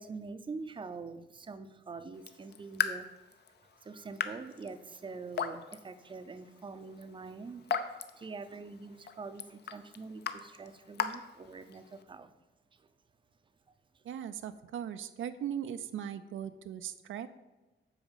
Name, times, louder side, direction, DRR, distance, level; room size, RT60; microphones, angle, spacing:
voice 1, 0.0-3.1 3.7-12.3 12.7-12.9 13.9-14.0, right 4 dB, 25° right, 11 dB, 0.5 m, -45 dB
Raindrop / Drip, 2.1-12.0, left 7 dB, 60° left, 0.7 m, -40 dB
voice 2, 14.0-17.3, right 9 dB, 90° right, 10 dB, 0.5 m, -39 dB
8.8 x 4.9 x 7.2 m, 1.1 s
wide cardioid pair, 170°, 20 cm